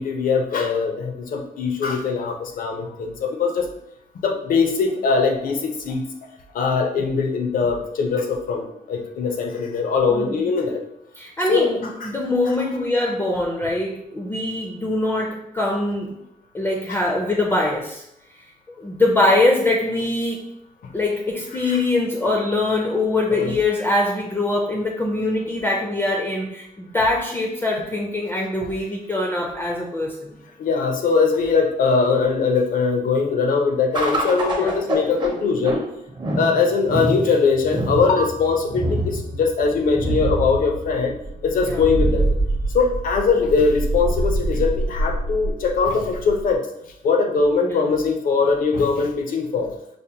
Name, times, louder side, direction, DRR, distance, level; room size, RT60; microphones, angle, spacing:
voice 1, 0.0-3.7 4.1-6.0 6.5-10.8 11.5-11.7 12.0-12.1 16.9-17.0 20.8-21.0 21.6-21.8 23.3-23.5 30.6-35.8 36.4-41.2 41.4-42.4 42.7-46.7 47.0-49.7, left 4 dB, 75° left, 4 dB, 0.6 m, -21 dB
voice 2, 10.1-10.4 11.2-16.2 16.5-18.0 18.8-20.4 20.9-30.3 34.6-34.8 41.6-41.8 47.6-47.9, left 2 dB, 15° left, -1 dB, 0.4 m, -23 dB
sound 1, 33.9-46.6, right 1 dB, 30° right, 0.6 m, -25 dB
5.0 x 2.1 x 2.8 m, 0.77 s
wide cardioid pair, 160°, 14 cm